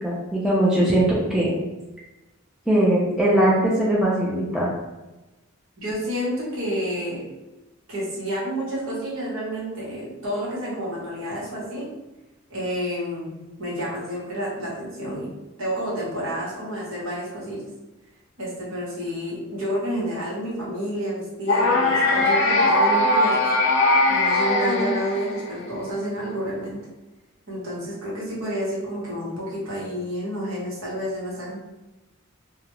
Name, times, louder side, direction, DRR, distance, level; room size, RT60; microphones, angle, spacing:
voice 1, 0.0-1.5 2.7-4.7, right 1 dB, 5° right, -7 dB, 0.4 m, -20 dB
voice 2, 5.8-7.3 7.9-11.8 12.5-15.3 15.6-17.6 18.4-23.4 24.1-26.8 27.5-31.6, equal, 70° right, -6 dB, 1.0 m, -29 dB
sound 1, 21.5-25.6, left 2 dB, 60° left, 0.5 m, -20 dB
2.3 x 2.1 x 2.9 m, 1.1 s
head